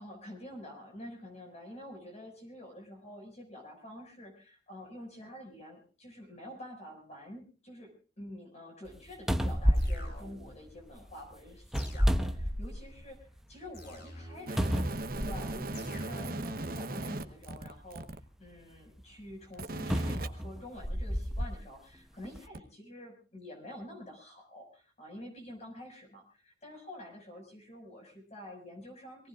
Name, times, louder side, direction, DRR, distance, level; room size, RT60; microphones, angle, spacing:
voice 1, 0.0-14.9 15.2-18.0 18.4-29.3, left 1 dB, 40° left, 2 dB, 6.1 m, -48 dB
sound 1, 8.9-9.0 9.3-11.0 11.7-13.1 13.5-13.6 14.6-15.7 16.6-16.7 19.9-21.6 22.2-22.4, equal, ahead, 0.9 m, -30 dB
sound 2, 9.7-10.6 11.7-12.6 13.7-14.6 15.7-16.6, left 1 dB, 60° left, 7.7 m, -47 dB
sound 3, 14.5-18.2 19.5-20.3 22.5-22.6, right 2 dB, 55° right, 1.1 m, -38 dB
26.0 x 18.5 x 2.5 m, 0.36 s
head